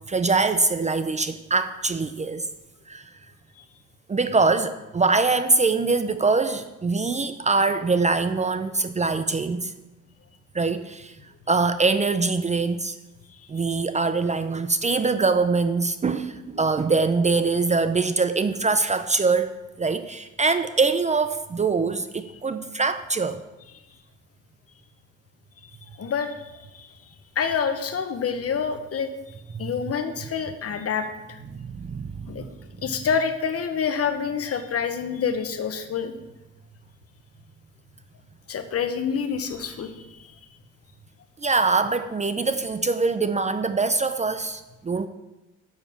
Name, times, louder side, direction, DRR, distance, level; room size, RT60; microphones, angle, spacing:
voice 1, 0.1-2.5 2.9-3.1 4.1-9.7 10.5-11.2 11.5-12.9 13.5-23.4 29.5-29.7 31.6-32.5 41.4-45.1, right 4 dB, 25° right, 11 dB, 0.5 m, -23 dB
voice 2, 26.0-26.9 27.4-29.1 29.6-31.1 32.3-32.4 32.8-36.1 38.5-39.9, left 6 dB, 50° left, 8 dB, 1.0 m, -27 dB
7.3 x 6.7 x 6.0 m, 1.0 s
cardioid pair, 90°, 30 cm